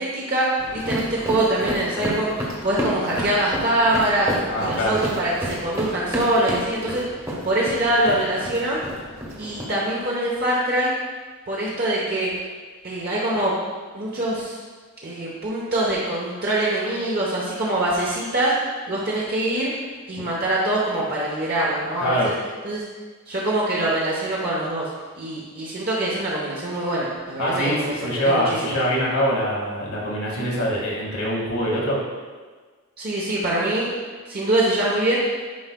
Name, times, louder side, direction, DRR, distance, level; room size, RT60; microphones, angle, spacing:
voice 1, 0.0-4.3 4.6-7.0 7.4-8.8 9.4-10.9 11.5-12.3 12.8-13.5 13.9-14.6 15.0-18.6 18.9-19.7 20.1-22.3 22.6-22.8 23.3-24.9 25.2-28.8 33.0-33.9 34.3-35.2, right 1 dB, 45° right, -5 dB, 0.9 m, -24 dB
sound 1, 0.6-9.7, equal, 15° right, 1.1 m, -31 dB
voice 2, 4.5-5.0 22.0-22.3 27.4-32.0, equal, 85° left, -4 dB, 1.9 m, -24 dB
9.5 x 5.5 x 2.2 m, 1.5 s
head